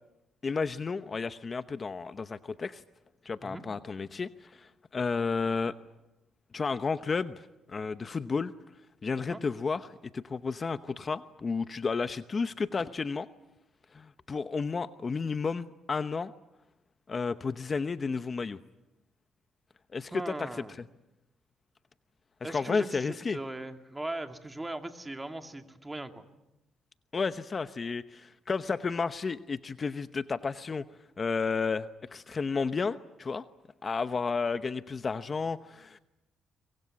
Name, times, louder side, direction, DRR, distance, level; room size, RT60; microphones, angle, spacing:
voice 1, 0.4-2.8 3.2-5.7 6.5-8.5 9.0-13.3 13.9-16.3 17.1-18.6 19.9-20.5 22.4-23.4 27.1-30.8 31.2-33.4 33.8-36.0, left 4 dB, 35° left, 12 dB, 0.9 m, -32 dB
voice 2, 20.1-20.8 22.4-26.2, right 2 dB, 15° right, 6 dB, 2.4 m, -39 dB
24.0 x 22.5 x 9.7 m, 0.95 s
cardioid pair, 90°, 0 cm